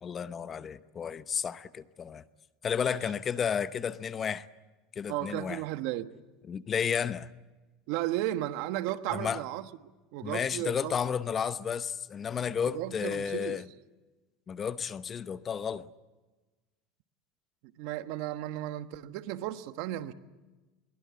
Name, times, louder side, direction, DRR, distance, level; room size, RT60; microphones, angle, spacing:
voice 1, 0.0-2.2 2.6-4.5 5.0-5.6 6.5-7.3 9.1-9.4 10.2-13.6 14.5-15.9, left 7 dB, 30° left, 0.8 m, -32 dB
voice 2, 5.1-6.1 7.9-9.7 10.1-10.9 12.7-13.6 17.8-20.1, right 14 dB, 65° right, 1.2 m, -34 dB
22.5 x 20.5 x 9.6 m
supercardioid pair, 130°, 0 cm